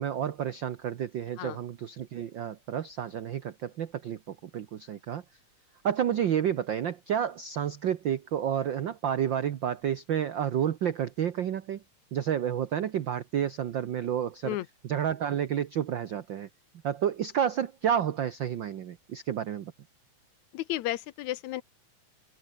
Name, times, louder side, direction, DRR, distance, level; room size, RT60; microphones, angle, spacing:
voice 1, 0.0-5.2 5.8-11.8 12.1-14.5 14.9-16.5 16.8-19.7, right 9 dB, 80° right, 1.0 m, -30 dB
voice 2, 20.5-21.6, left 15 dB, 75° left, 2.0 m, -33 dB
open air
omnidirectional pair, 3.5 m